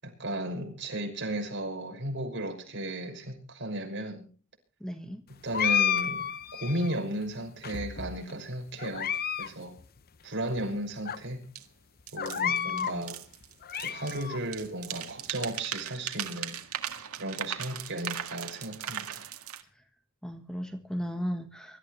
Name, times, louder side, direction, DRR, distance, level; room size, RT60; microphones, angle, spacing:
voice 1, 0.0-4.3 5.3-6.3 6.5-9.8 10.2-11.5 12.1-13.2 13.8-16.6 17.1-19.2, right 1 dB, 55° right, 6.1 m, -35 dB
voice 2, 4.8-5.2 12.4-13.1 20.2-21.8, equal, 5° left, 1.4 m, -36 dB
sound 1, 5.5-7.0 7.6-8.3 8.8-9.5 9.8-9.9 10.6-10.7 11.1-11.2 12.2-13.0 13.4-14.4, left 8 dB, 45° left, 0.8 m, -30 dB
sound 2, 11.6-11.7 12.1-14.3 14.5-19.6, right 9 dB, 80° right, 1.9 m, -38 dB
24.5 x 14.0 x 3.2 m
head